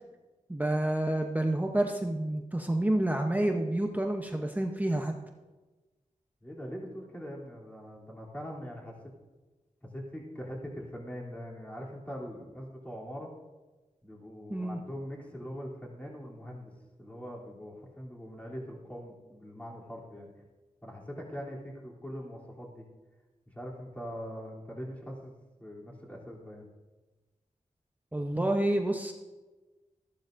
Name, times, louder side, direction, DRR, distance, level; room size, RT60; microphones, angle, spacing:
voice 1, 0.5-5.1 14.5-14.8 28.1-29.1, right 1 dB, 10° right, 3 dB, 0.8 m, -29 dB
voice 2, 6.4-8.9 9.8-13.3 14.0-16.7 17.0-20.3 20.8-22.8 23.5-26.7, equal, 10° left, -3 dB, 3.0 m, -42 dB
14.0 x 12.0 x 2.6 m, 1.2 s
wide cardioid pair, 85°, 13 cm